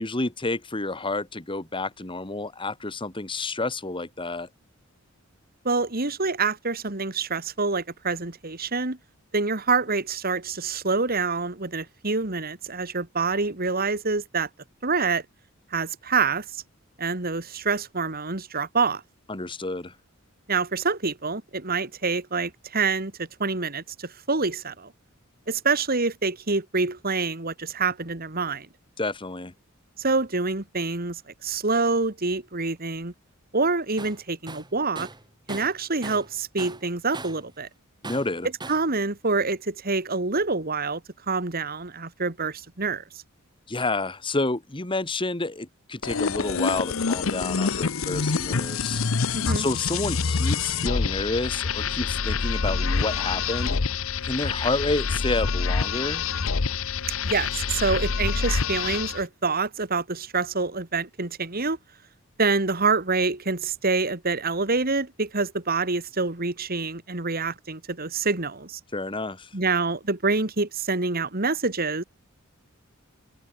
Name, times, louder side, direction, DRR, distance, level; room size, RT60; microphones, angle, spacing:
voice 1, 0.0-4.5 19.3-19.9 29.0-29.5 38.0-38.5 43.7-49.0 49.6-53.8 54.2-56.2 68.9-69.5, left 2 dB, 25° left, 1.7 m, -29 dB
voice 2, 5.6-9.0 9.3-14.5 14.8-15.2 15.7-16.4 17.0-19.0 20.5-24.9 25.5-28.7 30.0-33.1 33.5-35.1 35.5-37.7 38.7-41.0 41.3-43.0 49.3-49.7 57.2-61.8 62.4-68.8 69.5-72.0, right 4 dB, 45° right, 2.5 m, -26 dB
Tools, 34.0-34.2 34.5-36.3 36.6-37.5 38.0-38.9, right 3 dB, 20° right, 7.6 m, -39 dB
sound 1, 46.0-59.2, left 5 dB, 70° left, 0.8 m, -26 dB
head